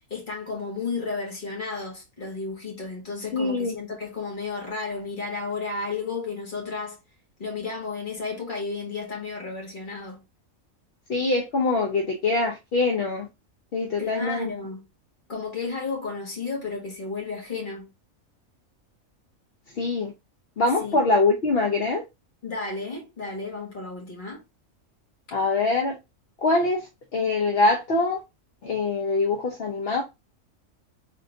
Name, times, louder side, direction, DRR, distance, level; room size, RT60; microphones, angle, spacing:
voice 1, 0.1-7.0 7.4-10.2 14.0-14.9 15.3-17.9 20.8-21.0 22.4-24.4, left 4 dB, 35° left, 1.7 m, -33 dB
voice 2, 3.3-3.8 11.1-13.3 13.7-14.5 19.7-20.1 20.6-22.0 25.3-26.0 26.4-28.2 28.6-30.0, left 3 dB, 55° left, 0.8 m, -24 dB
3.8 x 3.6 x 2.4 m
omnidirectional pair, 1.4 m